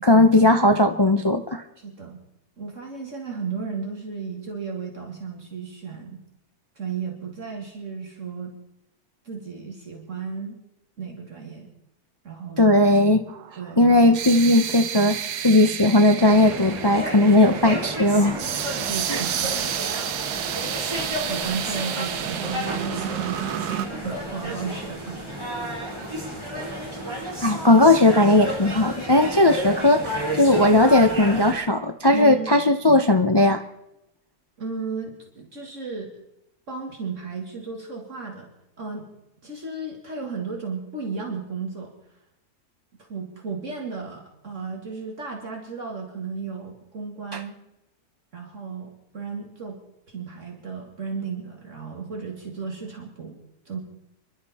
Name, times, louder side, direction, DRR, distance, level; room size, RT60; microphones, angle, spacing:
voice 1, 0.0-1.6 12.6-13.2 13.8-15.2 15.4-18.4 19.1-19.2 27.4-33.6 47.3-47.4, left 1 dB, 40° left, 7 dB, 0.3 m, -17 dB
voice 2, 1.8-2.2 2.6-6.2 6.8-8.5 9.2-10.6 11.0-11.7 12.2-12.8 13.6-13.8 18.4-19.5 19.9-20.2 21.3-25.7 32.1-32.5 34.6-36.1 36.7-38.5 38.8-39.1 39.4-41.9 43.1-47.6 48.3-49.8 50.1-53.4 53.7-53.8, right 5 dB, 50° right, 1 dB, 2.4 m, -34 dB
sound 1, 13.3-23.9, right 9 dB, 85° right, 1.4 m, -30 dB
sound 2, 16.2-31.5, equal, 15° right, 4.2 m, -32 dB
29.5 x 11.5 x 4.2 m, 0.86 s
omnidirectional pair, 1.6 m